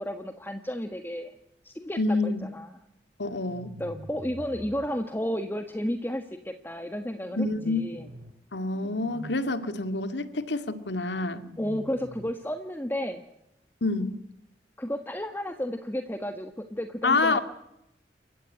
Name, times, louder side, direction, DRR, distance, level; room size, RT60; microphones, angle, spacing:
voice 1, 0.0-1.4 1.6-2.2 2.4-2.7 3.8-8.1 11.6-13.2 14.8-17.4, equal, 10° left, 7 dB, 1.4 m, -32 dB
voice 2, 2.0-2.5 3.2-3.7 7.4-7.8 8.5-11.4 13.8-14.1 17.0-17.4, left 3 dB, 75° left, 11 dB, 2.2 m, -27 dB
sound 1, 3.5-4.9 7.2-8.3 8.6-9.4 11.1-12.3, equal, 60° right, 4.6 m, -44 dB
29.5 x 15.5 x 9.7 m, 0.85 s
head